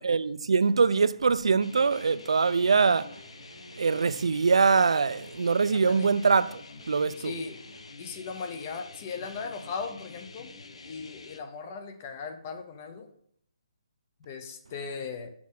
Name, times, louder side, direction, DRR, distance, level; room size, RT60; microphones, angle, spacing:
voice 1, 0.0-3.2 3.8-7.3, right 5 dB, 70° right, 0.4 m, -23 dB
sound 1, 1.6-11.4, left 3 dB, 80° left, 0.8 m, -47 dB
voice 2, 5.7-6.1 7.2-7.6 8.0-10.5 10.8-13.1 14.2-15.3, left 5 dB, 15° left, 0.5 m, -38 dB
7.3 x 6.0 x 3.7 m
hypercardioid pair, 180°, 3 cm